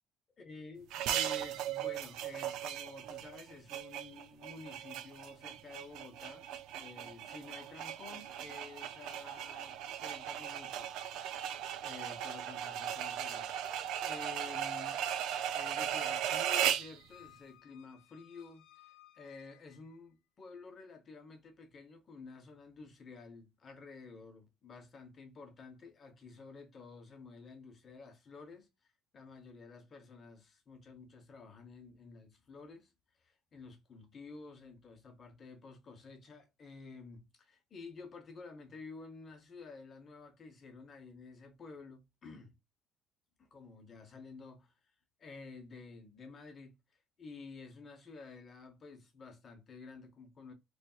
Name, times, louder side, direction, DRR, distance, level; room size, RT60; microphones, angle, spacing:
voice 1, 0.4-6.5 6.8-11.0 11.8-15.0 15.5-18.6 19.1-32.9 33.2-42.6 43.4-44.7 45.2-46.7 47.2-50.5, left 4 dB, 25° left, 0.9 m, -51 dB
sound 1, 0.9-17.0, right 10 dB, 60° right, 0.4 m, -37 dB
Squeak, 15.5-20.0, left 15 dB, 60° left, 0.5 m, -61 dB
4.1 x 3.2 x 2.3 m
cardioid pair, 175°, 0 cm